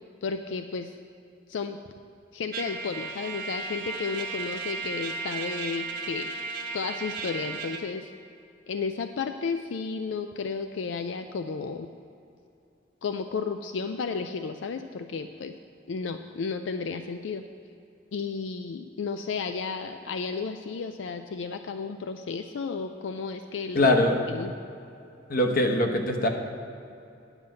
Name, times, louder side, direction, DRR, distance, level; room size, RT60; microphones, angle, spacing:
voice 1, 0.2-0.9 1.5-1.8 2.3-6.3 6.7-8.1 8.7-11.9 13.0-15.6 15.9-17.4 18.1-23.9 24.3-24.5, left 5 dB, 85° left, 7 dB, 0.4 m, -33 dB
Trumpet, 2.5-7.9, right 4 dB, 50° right, 1.0 m, -35 dB
voice 2, 23.7-24.2 25.3-26.3, left 1 dB, 50° left, 4 dB, 1.0 m, -22 dB
9.9 x 5.6 x 7.6 m, 2.6 s
head